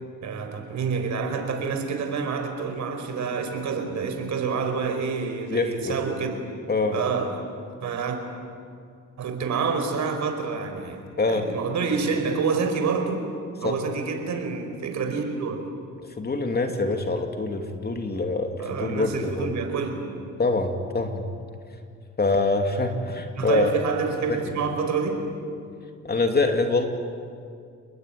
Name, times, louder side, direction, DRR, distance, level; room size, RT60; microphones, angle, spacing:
voice 1, 0.2-6.3 6.9-7.4 7.8-8.2 9.2-13.2 13.6-15.7 18.6-20.1 23.3-25.3, right 5 dB, 65° right, 6 dB, 4.7 m, -27 dB
voice 2, 5.5-6.0 6.7-7.0 11.2-11.5 13.6-13.8 16.2-19.5 20.4-21.2 22.2-23.7 24.3-24.4 26.0-26.8, left 3 dB, 30° left, 5 dB, 2.7 m, -25 dB
29.5 x 21.0 x 9.5 m, 2.3 s
cardioid pair, 90°, 30 cm